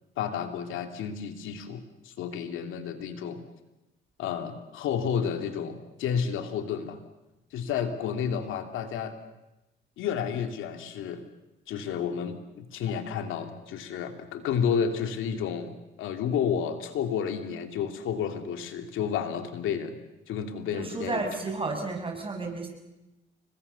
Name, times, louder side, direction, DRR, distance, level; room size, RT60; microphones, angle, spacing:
voice 1, 0.2-3.4 4.2-7.0 7.5-9.2 10.0-11.2 11.7-15.7 16.0-20.0 20.3-21.3, left 7 dB, 85° left, 7 dB, 2.6 m, -31 dB
voice 2, 20.7-22.7, right 3 dB, 25° right, 2 dB, 6.3 m, -32 dB
29.5 x 22.0 x 6.9 m, 0.98 s
cardioid pair, 90°, 20 cm